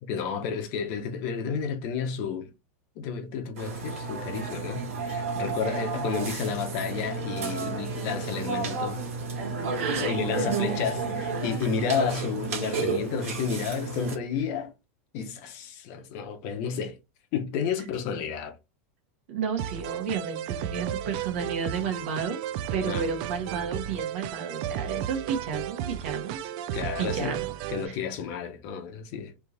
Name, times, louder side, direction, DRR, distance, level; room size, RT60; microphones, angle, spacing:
voice 1, 0.0-2.5 3.0-9.0 9.9-14.7 15.1-17.0 17.3-18.6 22.9-23.1 26.7-27.4 27.7-29.3, left 6 dB, 40° left, 0.9 m, -31 dB
Burping eructation, 3.6-14.1, right 3 dB, 90° right, 1.7 m, -32 dB
voice 2, 9.7-11.5 19.3-22.4 22.7-26.5 27.0-27.5 27.8-27.9, right 6 dB, 60° right, 1.3 m, -32 dB
sound 1, 19.6-27.9, right 11 dB, 40° right, 0.3 m, -34 dB
3.5 x 2.9 x 4.0 m
supercardioid pair, 170°, 7 cm